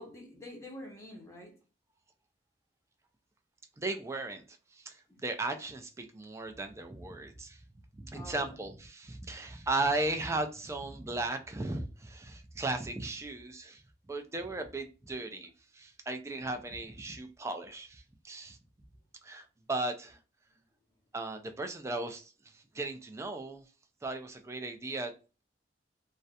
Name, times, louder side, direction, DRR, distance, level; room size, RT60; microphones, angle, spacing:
voice 1, 0.0-1.6 5.1-5.2 8.1-8.6, left 1 dB, 15° left, 0.7 m, -47 dB
voice 2, 3.8-4.4 4.7-7.6 8.0-13.8 14.1-18.6 19.2-20.2 21.1-23.6 24.0-25.1, right 2 dB, 15° right, 0.3 m, -36 dB
2.4 x 2.1 x 2.7 m
head